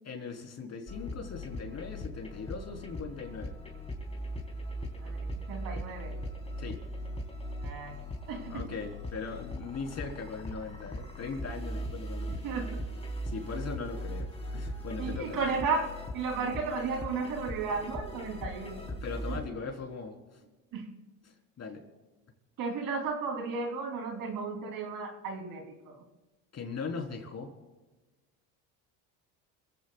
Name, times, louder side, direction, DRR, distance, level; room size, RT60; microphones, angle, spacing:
voice 1, 0.0-3.6 6.6-6.8 8.5-12.5 13.2-15.4 18.9-20.4 21.3-21.8 26.5-27.5, left 4 dB, 40° left, 2 dB, 3.9 m, -39 dB
sound 1, 0.9-19.5, equal, 15° left, 3.8 m, -39 dB
voice 2, 5.0-6.2 7.6-8.0 8.3-8.7 12.4-12.8 15.0-18.8 19.3-19.4 20.7-20.9 22.6-26.0, right 4 dB, 65° right, 2 dB, 3.4 m, -34 dB
27.5 x 16.0 x 2.4 m, 1.2 s
supercardioid pair, 90°, 38 cm